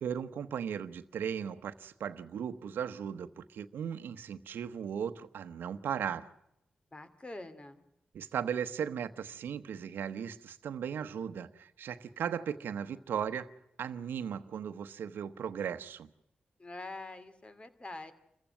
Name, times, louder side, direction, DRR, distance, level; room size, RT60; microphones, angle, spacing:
voice 1, 0.0-6.3 8.1-13.5 13.8-16.1, right 8 dB, 85° right, 12 dB, 1.0 m, -37 dB
voice 2, 6.9-7.8 16.6-18.1, left 2 dB, 30° left, 10 dB, 2.6 m, -45 dB
28.0 x 15.0 x 9.0 m, 0.81 s
cardioid pair, 45°, 3 cm